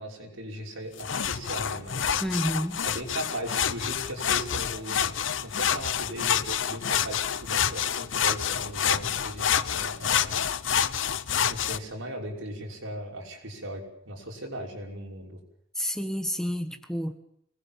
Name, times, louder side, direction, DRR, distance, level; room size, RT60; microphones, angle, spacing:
voice 1, 0.0-2.2 2.8-5.1 5.4-10.5 11.5-15.4, right 1 dB, 80° right, 0 dB, 5.7 m, -38 dB
sound 1, 1.0-11.8, left 8 dB, 70° left, 0.8 m, -28 dB
voice 2, 2.2-2.8 15.8-17.2, equal, 5° left, 7 dB, 1.2 m, -29 dB
25.5 x 20.0 x 7.3 m, 0.72 s
head